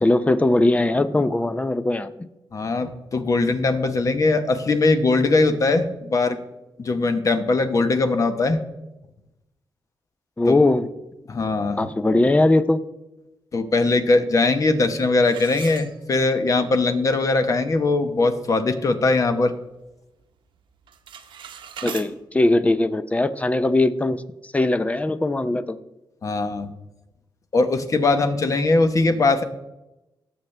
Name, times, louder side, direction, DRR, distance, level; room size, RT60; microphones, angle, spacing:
voice 1, 0.0-2.3 10.4-10.9 11.8-12.8 21.8-24.2 24.5-25.8, left 2 dB, 15° left, 12 dB, 0.6 m, -20 dB
voice 2, 2.5-6.4 6.8-8.6 11.3-11.8 13.5-19.5 26.2-26.7 27.5-29.4, left 3 dB, 40° left, 8 dB, 1.1 m, -20 dB
sound 1, 15.2-16.5 16.9-17.0 17.6-17.7 18.1-18.4 18.8-19.9 20.2-20.5 20.8-22.1, right 8 dB, 90° right, 0.9 m, -40 dB
18.5 x 7.3 x 3.3 m, 0.97 s
cardioid pair, 105°, 8 cm